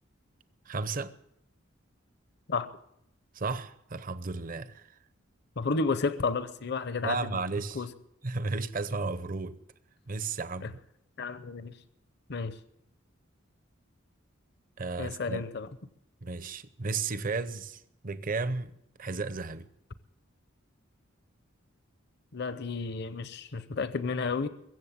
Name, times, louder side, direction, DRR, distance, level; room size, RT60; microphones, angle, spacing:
voice 1, 0.7-1.1 3.3-4.9 7.0-7.8 8.2-9.6 10.1-10.8 14.8-15.5 16.2-18.7 19.0-19.7, right 3 dB, 45° right, 0.7 m, -34 dB
voice 2, 5.6-7.3 7.8-7.9 11.2-11.7 12.3-12.6 15.0-15.7 22.3-24.5, left 4 dB, 55° left, 0.7 m, -31 dB
22.5 x 7.7 x 6.9 m
head